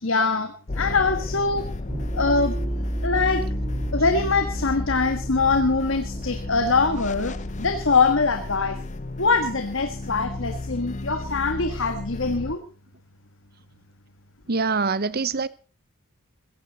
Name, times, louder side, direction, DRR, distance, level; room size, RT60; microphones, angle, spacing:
voice 1, 0.0-1.6 2.1-2.6 3.0-3.4 3.9-8.8 9.2-12.6, left 4 dB, 60° left, 1.5 m, -23 dB
sound 1, 0.7-12.6, left 2 dB, 35° left, 0.7 m, -34 dB
sound 2, 1.9-10.6, right 1 dB, 5° right, 2.5 m, -33 dB
voice 2, 14.5-15.5, right 4 dB, 45° right, 0.8 m, -24 dB
16.0 x 15.5 x 4.0 m
head